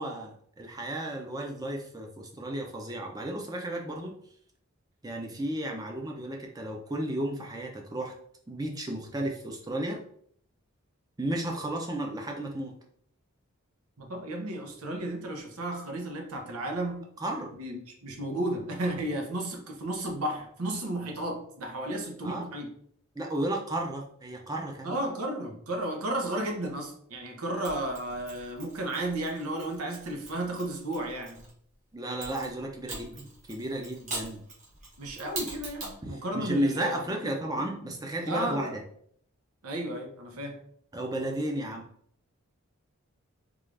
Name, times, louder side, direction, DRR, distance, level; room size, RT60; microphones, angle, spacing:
voice 1, 0.0-4.1 5.0-8.1 8.5-10.0 11.2-12.7 17.2-17.5 22.2-22.4 23.1-25.0 31.9-34.4 36.0-38.8 40.9-41.9, right 1 dB, 15° right, 1 dB, 0.5 m, -33 dB
voice 2, 14.0-17.0 17.6-22.7 24.8-31.4 35.0-37.3 37.8-37.9 38.3-38.8 39.6-40.6, right 1 dB, 85° right, 3 dB, 0.8 m, -33 dB
Mechanisms, 27.6-31.5 32.2-36.0, right 2 dB, 35° right, 1.1 m, -42 dB
3.7 x 2.4 x 3.2 m, 0.64 s
head